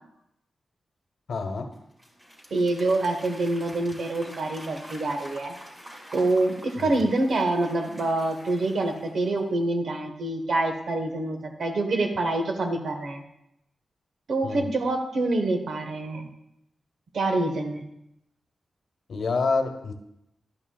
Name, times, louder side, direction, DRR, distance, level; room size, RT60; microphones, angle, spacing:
voice 1, 1.3-1.7 6.8-7.0 14.4-14.7 19.1-19.9, left 4 dB, 70° left, 6 dB, 0.9 m, -27 dB
Applause / Crowd, 1.7-9.5, equal, 20° right, 2.4 m, -47 dB
voice 2, 2.5-5.5 6.1-13.2 14.3-16.3 17.1-17.8, right 2 dB, 70° right, 4 dB, 1.2 m, -26 dB
12.0 x 8.8 x 2.3 m, 0.81 s
wide cardioid pair, 155°, 0 cm